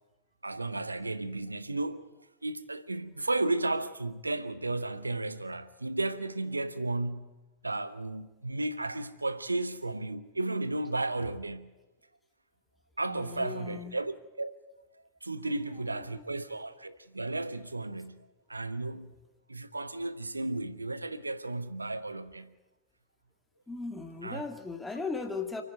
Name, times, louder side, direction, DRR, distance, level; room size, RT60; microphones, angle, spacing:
voice 1, 0.4-2.0 2.4-7.3 7.6-11.7 13.0-14.5 15.2-19.1 19.5-22.5 24.2-24.4, right 2 dB, 80° right, 1.0 m, -34 dB
voice 2, 13.1-14.0 15.7-16.2 23.7-25.6, left 4 dB, 10° left, 2.1 m, -38 dB
29.0 x 9.8 x 9.5 m
figure-of-eight pair, 90°, 0 cm